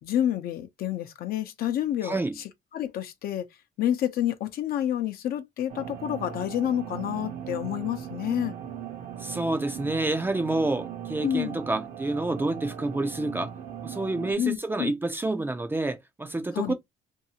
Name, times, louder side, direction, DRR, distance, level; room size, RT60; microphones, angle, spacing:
voice 1, 0.0-3.5 3.8-8.6 11.2-11.6 14.4-14.9 16.5-16.7, left 11 dB, 60° left, 0.6 m, -29 dB
voice 2, 2.0-2.3 9.2-13.5 13.8-16.7, right 2 dB, 10° right, 0.4 m, -28 dB
sound 1, 5.7-14.3, right 9 dB, 55° right, 0.8 m, -38 dB
2.7 x 2.3 x 2.8 m
cardioid pair, 110°, 17 cm